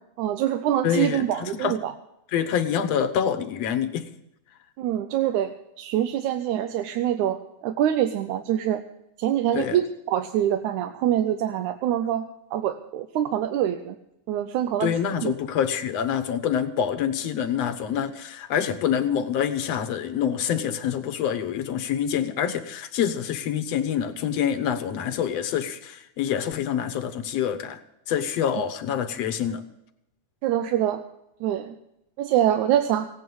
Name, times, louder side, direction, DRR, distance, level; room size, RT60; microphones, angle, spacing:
voice 1, 0.2-1.9 4.8-8.8 9.2-14.0 14.3-14.9 15.2-15.3 30.4-31.0 31.4-31.8 32.2-33.1, right 11 dB, 80° right, 8 dB, 2.1 m, -25 dB
voice 2, 0.8-1.8 2.3-4.1 9.5-9.8 14.8-27.8 28.1-29.6, left 8 dB, 65° left, 9 dB, 1.9 m, -26 dB
17.0 x 9.7 x 7.1 m, 0.82 s
omnidirectional pair, 3.6 m